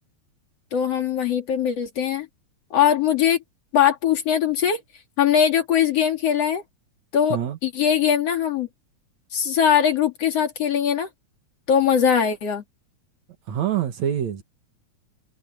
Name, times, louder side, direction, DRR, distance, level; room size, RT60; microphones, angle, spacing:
voice 1, 0.7-2.3 2.7-3.4 3.7-4.8 5.2-6.6 7.1-7.4 7.6-8.7 9.3-11.1 11.7-12.6, left 8 dB, 55° left, 3.3 m, -21 dB
voice 2, 13.5-14.4, right 10 dB, 65° right, 2.9 m, -25 dB
omnidirectional pair, 3.5 m